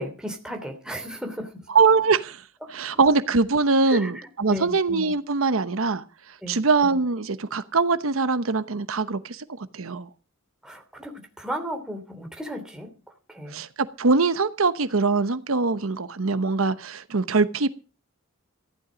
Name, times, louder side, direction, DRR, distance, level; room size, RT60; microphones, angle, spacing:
voice 1, 0.0-1.7 3.9-4.8 6.4-6.6 10.6-12.9 13.3-13.6, equal, 5° right, 4 dB, 2.9 m, -35 dB
voice 2, 1.7-2.4 2.7-6.0 6.5-9.4 9.7-10.1 13.5-17.7, right 4 dB, 80° right, 12 dB, 0.9 m, -22 dB
15.0 x 11.5 x 5.1 m, 0.34 s
head